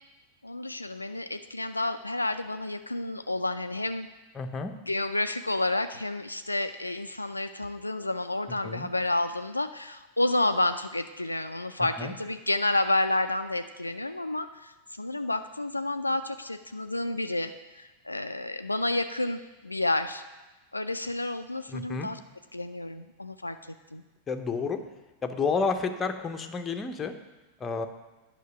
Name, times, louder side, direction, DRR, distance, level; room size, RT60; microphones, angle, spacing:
voice 1, 0.4-4.1 4.9-20.2 20.7-22.2 22.5-23.6 23.9-24.0, left 2 dB, 85° left, 9 dB, 0.3 m, -30 dB
voice 2, 4.3-4.7 8.6-8.9 12.0-12.1 21.7-22.1 24.3-24.8 25.2-27.1 27.6-27.9, left 4 dB, 20° left, 7 dB, 0.7 m, -30 dB
9.4 x 5.7 x 5.8 m, 1.1 s
figure-of-eight pair, 90°, 0 cm